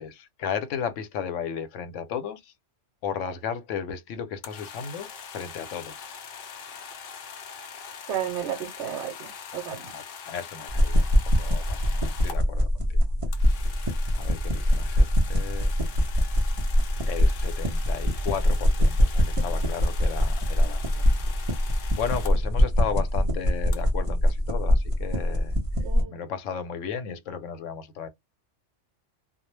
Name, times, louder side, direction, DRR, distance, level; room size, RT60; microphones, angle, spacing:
voice 1, 0.0-2.5 3.0-6.2 9.5-13.0 13.5-13.8 14.1-15.7 17.1-25.6 26.1-28.1, left 7 dB, 85° left, 0.9 m, -35 dB
sound 1, 4.4-12.4 13.3-22.3 23.7-23.8, left 6 dB, 60° left, 0.7 m, -42 dB
voice 2, 8.1-9.9 19.4-19.5 25.8-26.2, right 10 dB, 75° right, 0.9 m, -33 dB
sound 2, 10.7-26.0, equal, 40° right, 0.5 m, -23 dB
2.2 x 2.0 x 3.0 m
omnidirectional pair, 1.2 m